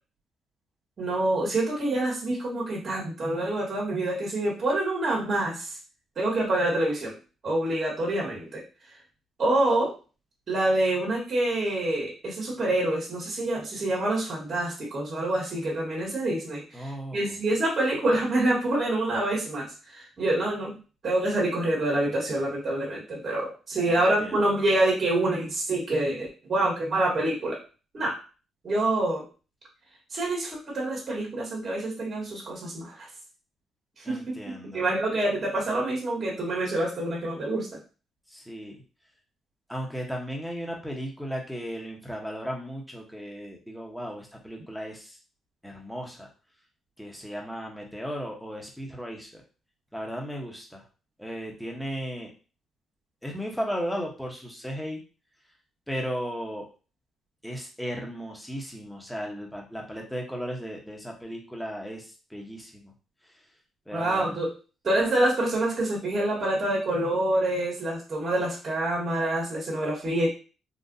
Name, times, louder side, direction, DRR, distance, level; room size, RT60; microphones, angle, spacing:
voice 1, 1.0-5.8 6.2-7.2 7.4-8.6 9.4-9.9 10.5-20.8 21.0-27.6 27.9-28.2 28.6-29.3 30.1-33.1 34.1-34.2 34.7-37.8 63.9-64.5 64.8-70.3, right 1 dB, 40° right, -3 dB, 1.5 m, -26 dB
voice 2, 16.7-17.3 23.9-24.3 34.0-34.9 38.3-38.8 39.7-45.1 45.6-46.3 47.0-49.3 49.9-50.8 51.2-52.3 53.2-55.0 55.9-56.6 57.4-62.0 62.3-62.9 63.9-64.4, equal, ahead, 0 dB, 1.0 m, -35 dB
3.9 x 2.5 x 2.6 m, 0.34 s
cardioid pair, 90°, 0 cm